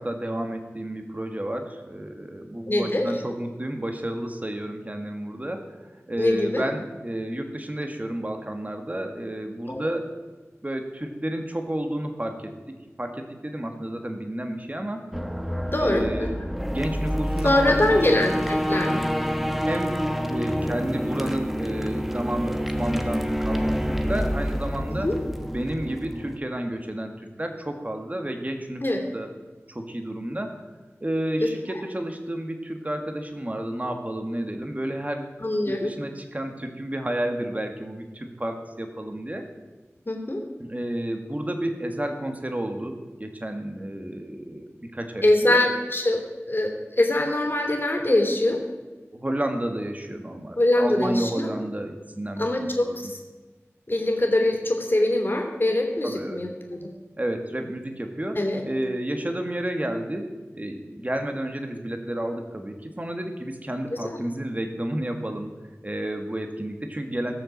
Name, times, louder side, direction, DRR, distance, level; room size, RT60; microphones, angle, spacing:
voice 1, 0.0-5.7 6.1-10.2 10.6-15.0 15.8-16.3 16.7-18.2 19.6-25.1 25.4-28.8 29.1-29.3 29.7-30.6 31.0-35.3 35.7-39.4 40.6-45.6 49.1-53.1 56.0-56.4 57.2-58.4 58.6-65.5 65.8-67.3, right 1 dB, 30° right, 4 dB, 1.9 m, -31 dB
voice 2, 2.7-3.1 6.2-6.6 9.7-9.9 15.7-16.3 17.4-19.0 24.9-25.2 28.8-29.0 31.4-31.5 35.4-35.9 40.0-40.4 45.2-48.6 50.6-51.5 52.4-53.2 53.9-56.9 58.3-58.6 64.0-64.2, left 1 dB, 45° left, 1 dB, 3.0 m, -23 dB
sound 1, 15.1-26.4, equal, 5° right, 1.1 m, -27 dB
17.0 x 7.0 x 7.4 m, 1.3 s
wide cardioid pair, 60°, 5 cm